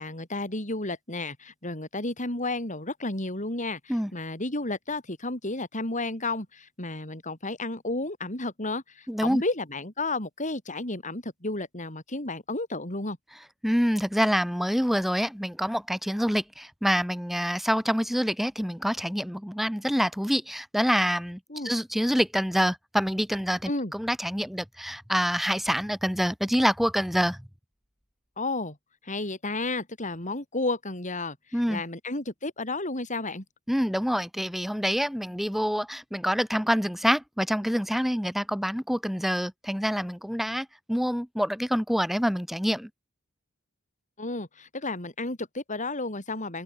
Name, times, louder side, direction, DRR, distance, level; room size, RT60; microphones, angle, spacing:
voice 1, 0.0-13.2 21.5-21.7 23.7-23.9 28.4-28.8 29.0-33.4 44.2-46.6, left 2 dB, 35° left, 6.0 m, -32 dB
voice 2, 9.1-9.4 13.6-27.5 31.5-31.8 33.7-42.9, equal, ahead, 4.8 m, -26 dB
head